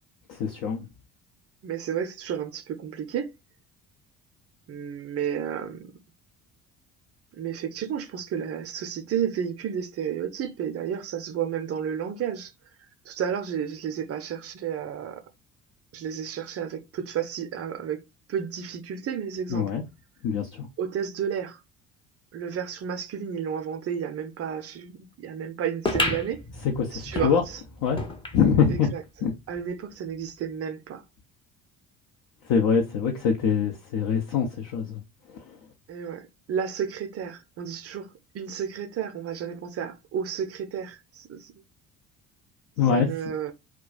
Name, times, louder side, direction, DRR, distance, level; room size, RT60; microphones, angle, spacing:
voice 1, 0.3-0.9 19.5-19.8 20.2-20.7 26.6-27.4 27.8-28.0 28.3-28.9 29.2-29.3 32.4-35.0 35.3-35.6 42.8-43.1, left 6 dB, 50° left, 0.7 m, -24 dB
voice 2, 1.6-3.3 4.7-5.9 7.4-12.5 13.0-15.2 15.9-18.0 18.3-19.7 20.8-21.6 22.3-26.4 26.9-27.6 28.7-29.0 29.5-31.0 35.9-38.1 38.3-41.6 42.9-43.5, right 8 dB, 35° right, 0.6 m, -32 dB
jf Pool Ball hit and pocket, 25.8-28.8 29.2-29.3 29.5-29.6 30.4-30.5, left 1 dB, 10° left, 0.7 m, -31 dB
2.3 x 2.2 x 3.9 m
figure-of-eight pair, 55°, 42 cm